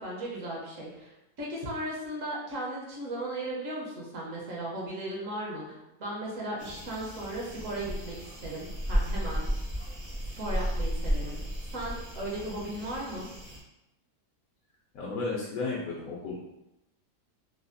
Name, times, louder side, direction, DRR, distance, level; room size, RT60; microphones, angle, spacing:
voice 1, 0.0-5.6 6.0-9.5 10.2-11.4 11.7-13.3, right 1 dB, 65° right, -4 dB, 1.1 m, -36 dB
sound 1, 6.6-13.6, equal, 30° right, 0.5 m, -33 dB
voice 2, 14.9-16.6, left 3 dB, 70° left, -5 dB, 0.9 m, -34 dB
3.3 x 2.3 x 2.5 m, 0.91 s
omnidirectional pair, 1.6 m